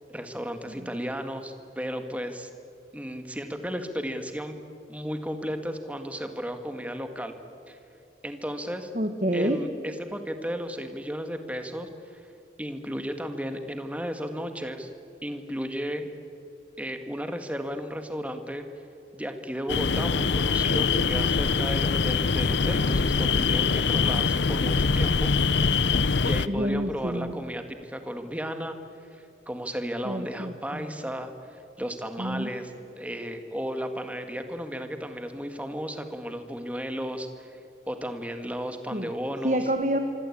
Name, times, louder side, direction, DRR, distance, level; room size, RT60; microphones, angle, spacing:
voice 1, 0.1-2.5 2.9-4.6 4.9-7.3 7.7-7.8 8.2-8.9 9.3-12.2 12.6-14.9 15.2-16.1 16.8-18.7 19.1-25.3 26.0-28.8 29.1-37.6 37.9-39.6, equal, 10° right, 7 dB, 1.7 m, -34 dB
voice 2, 8.9-9.6 26.5-27.3 30.0-30.9 32.2-32.5 38.9-39.1 39.4-40.0, right 1 dB, 45° right, 6 dB, 1.5 m, -28 dB
sound 1, 19.7-26.5, left 5 dB, 85° left, 0.7 m, -23 dB
25.5 x 25.0 x 8.6 m, 2.8 s
head